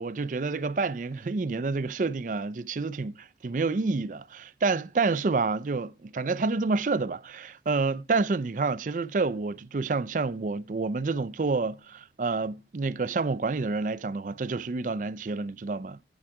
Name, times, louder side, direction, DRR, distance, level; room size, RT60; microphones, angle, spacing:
voice 1, 0.0-16.0, right 3 dB, 45° right, 0.4 m, -28 dB
10.5 x 4.7 x 4.7 m
head